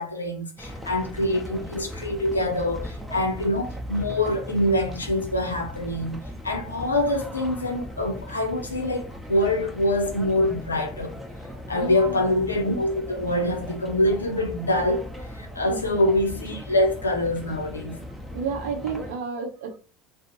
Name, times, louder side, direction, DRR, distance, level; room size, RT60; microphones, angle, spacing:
voice 1, 0.0-6.2 6.4-11.1 11.7-18.0, left 1 dB, 85° left, 0.4 m, -25 dB
sound 1, 0.6-19.1, equal, 10° right, 0.7 m, -38 dB
voice 2, 11.7-12.2 15.6-16.0 18.3-19.8, right 5 dB, 70° right, 0.6 m, -31 dB
2.4 x 2.0 x 2.8 m
figure-of-eight pair, 65°, 0 cm